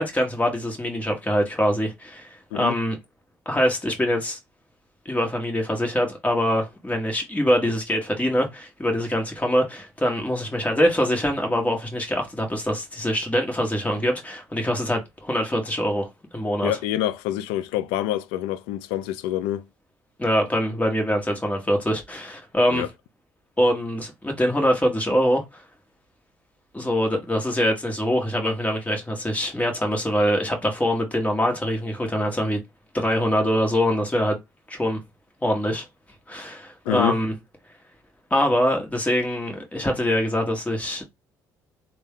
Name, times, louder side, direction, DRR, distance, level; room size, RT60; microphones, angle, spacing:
voice 1, 0.0-3.0 3.4-4.4 5.0-16.1 16.3-16.7 20.2-22.8 23.6-25.6 26.7-32.6 32.9-34.4 34.7-35.0 35.4-35.8 36.3-37.3 38.3-41.0, equal, 15° left, 1.5 m, -24 dB
voice 2, 16.6-19.7 22.7-22.9 36.9-37.2, left 12 dB, 75° left, 0.4 m, -26 dB
3.4 x 2.2 x 3.6 m
hypercardioid pair, 55°, 10 cm